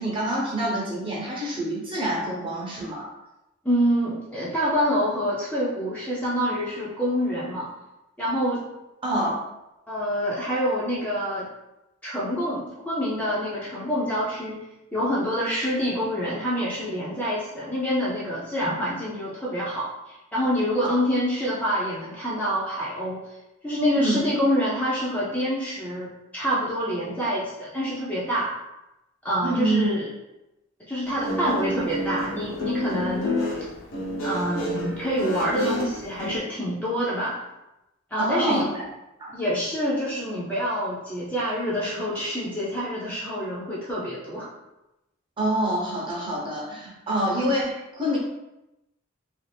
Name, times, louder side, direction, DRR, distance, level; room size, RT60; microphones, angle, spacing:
voice 1, 0.0-3.1 9.0-9.3 20.8-20.9 24.0-24.2 29.4-29.9 38.2-38.6 39.2-39.3 45.4-48.2, right 1 dB, 25° right, -5 dB, 0.7 m, -26 dB
voice 2, 3.6-7.7 8.2-8.6 9.9-11.5 12.0-14.6 14.9-23.2 23.6-28.5 29.2-30.1 30.9-33.4 34.2-37.4 38.1-38.7 39.3-44.5, equal, 5° left, -8 dB, 0.5 m, -26 dB
Guitar, 31.1-36.4, left 1 dB, 85° left, 0.8 m, -29 dB
2.5 x 2.4 x 3.3 m, 0.94 s
head